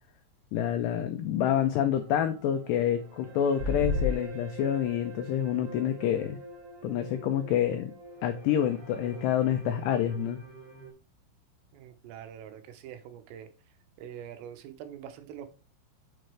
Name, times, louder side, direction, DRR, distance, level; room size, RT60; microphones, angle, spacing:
voice 1, 0.5-6.4 6.8-7.9 8.2-10.4, left 10 dB, 90° left, 2.4 m, -27 dB
sound 1, 1.4-10.9, right 2 dB, 25° right, 2.4 m, -46 dB
sound 2, 3.6-4.2, left 3 dB, 65° right, 3.2 m, -28 dB
voice 2, 11.7-13.5 14.0-15.5, right 9 dB, 85° right, 3.7 m, -44 dB
7.9 x 6.2 x 3.3 m
omnidirectional pair, 5.9 m